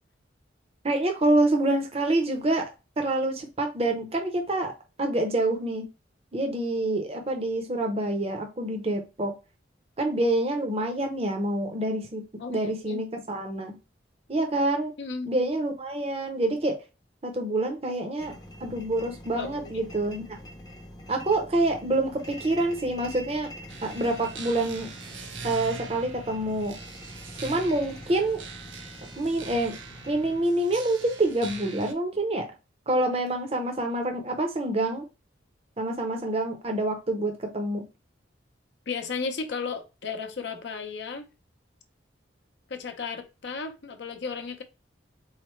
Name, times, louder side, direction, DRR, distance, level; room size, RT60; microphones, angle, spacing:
voice 1, 0.8-2.7 3.0-4.7 5.0-5.9 6.3-9.3 10.0-12.2 12.5-13.7 14.3-14.9 15.3-16.8 17.2-20.4 21.1-23.5 23.8-24.9 25.4-26.7 27.4-28.4 29.2-29.8 30.1-32.5 32.9-35.1 35.8-37.8, right 2 dB, 30° right, 0.7 m, -27 dB
voice 2, 12.4-13.0 15.0-15.3 19.3-19.9 38.9-41.3 42.7-44.6, left 5 dB, 65° left, 0.6 m, -34 dB
sound 1, 18.2-30.4, equal, 20° left, 0.6 m, -45 dB
sound 2, 23.7-31.9, right 4 dB, 80° right, 0.8 m, -42 dB
4.0 x 3.2 x 3.1 m
head